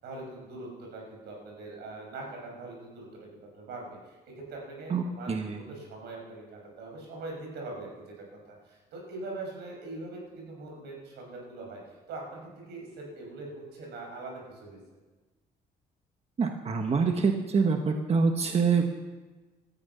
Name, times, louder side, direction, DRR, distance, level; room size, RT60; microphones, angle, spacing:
voice 1, 0.0-11.8 12.1-14.8, right 2 dB, 85° right, 0 dB, 6.0 m, -42 dB
voice 2, 4.9-5.7 16.4-18.8, right 5 dB, 40° right, 4 dB, 1.3 m, -26 dB
16.5 x 13.5 x 5.6 m, 1.2 s
cardioid pair, 90°, 17 cm